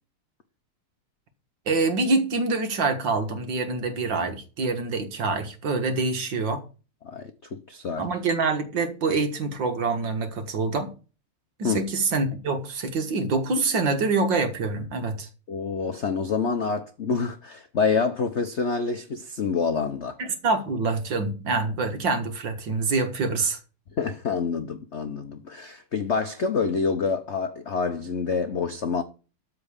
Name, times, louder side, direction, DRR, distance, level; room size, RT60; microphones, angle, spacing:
voice 1, 1.7-6.6 8.0-10.9 11.6-15.3 20.2-23.6, right 3 dB, 60° right, 2.1 m, -26 dB
voice 2, 7.0-8.0 11.6-11.8 15.5-20.2 24.0-29.0, left 5 dB, 60° left, 0.7 m, -27 dB
13.5 x 4.5 x 7.2 m
omnidirectional pair, 2.4 m